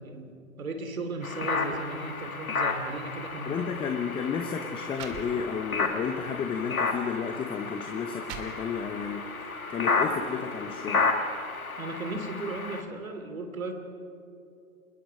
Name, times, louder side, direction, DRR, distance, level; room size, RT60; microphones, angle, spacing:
voice 1, 0.0-3.7 11.8-13.7, right 2 dB, 75° right, 6 dB, 2.9 m, -36 dB
sound 1, 1.2-12.8, left 4 dB, 90° left, 1.9 m, -32 dB
voice 2, 3.5-9.2 9.7-11.1, left 6 dB, 10° left, 6 dB, 0.8 m, -32 dB
sound 2, 3.8-3.9 4.6-4.7 4.9-5.8 6.4-6.5 7.3-7.4 7.9-9.1, right 8 dB, 35° right, 2.2 m, -44 dB
26.0 x 21.0 x 5.1 m, 2.6 s
figure-of-eight pair, 120°, 41 cm